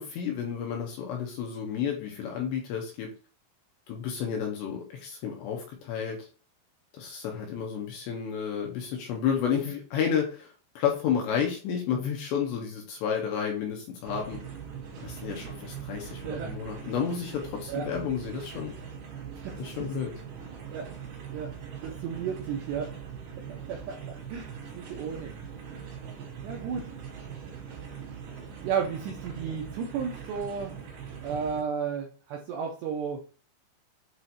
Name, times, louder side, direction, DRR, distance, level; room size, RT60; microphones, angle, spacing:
voice 1, 0.0-3.1 3.9-6.2 7.0-14.4 15.0-18.7 19.6-20.1, left 7 dB, 75° left, 1 dB, 2.8 m, -31 dB
sound 1, 14.0-31.6, right 7 dB, 55° right, 3.7 m, -41 dB
voice 2, 19.4-19.8 20.7-20.9 21.3-21.5 21.8-22.9 23.5-25.3 26.4-26.9 28.6-30.8 31.2-33.2, right 6 dB, 80° right, 0 dB, 2.5 m, -33 dB
8.0 x 3.0 x 4.2 m, 0.36 s
omnidirectional pair, 5.8 m